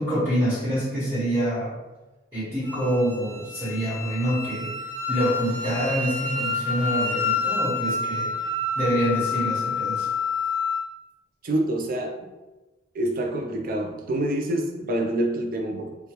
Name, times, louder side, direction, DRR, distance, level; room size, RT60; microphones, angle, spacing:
voice 1, 0.0-1.8 2.3-10.1, equal, 10° right, -13 dB, 1.3 m, -26 dB
Wind instrument woodwind instrument, 2.6-10.8, left 4 dB, 45° left, 1.1 m, -28 dB
voice 2, 11.4-12.2 12.9-16.0, right 1 dB, 50° right, 3 dB, 0.4 m, -26 dB
2.9 x 2.2 x 3.0 m, 1.1 s
head